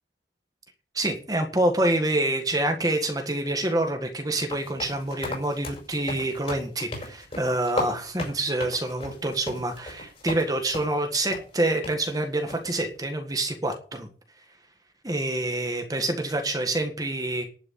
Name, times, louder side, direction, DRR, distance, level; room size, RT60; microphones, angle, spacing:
voice 1, 0.9-14.1 15.0-17.5, right 1 dB, 20° right, 4 dB, 1.7 m, -27 dB
sound 1, 4.5-10.5 10.7-11.0 11.3-11.4 11.8-12.0 12.5-12.7, left 2 dB, 35° left, 5.4 m, -36 dB
11.5 x 6.7 x 8.3 m, 0.40 s
head